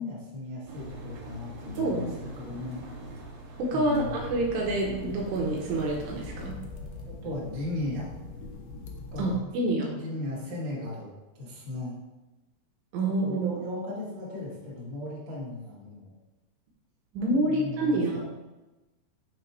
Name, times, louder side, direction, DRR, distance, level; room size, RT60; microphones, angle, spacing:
voice 1, 0.0-2.1 2.4-2.8 3.7-4.2 7.1-8.1 9.1-9.5 9.8-11.1 11.4-12.0 13.0-16.1 17.1-18.2, left 2 dB, 45° right, -7 dB, 2.6 m, -36 dB
Engine, 0.7-6.5, right 2 dB, 65° right, 2.5 m, -44 dB
voice 2, 1.8-2.2 3.6-6.6 9.2-9.9 12.9-13.5 17.1-18.2, right 2 dB, 85° right, -1 dB, 3.0 m, -27 dB
sound 1, 3.8-9.4, left 3 dB, 85° left, 1.9 m, -42 dB
7.2 x 3.6 x 4.6 m, 1.1 s
omnidirectional pair, 5.0 m